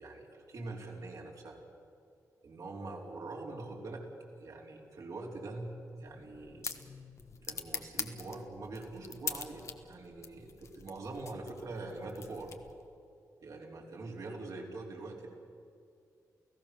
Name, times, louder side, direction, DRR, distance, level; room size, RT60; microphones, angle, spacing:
voice 1, 0.0-1.6 2.4-4.1 4.4-6.7 7.4-12.6 13.4-15.3, right 2 dB, 65° right, -1 dB, 4.1 m, -44 dB
sound 1, 6.0-12.9, left 5 dB, 50° left, 1.3 m, -44 dB
29.5 x 16.5 x 6.9 m, 2.4 s
cardioid pair, 105°, 6 cm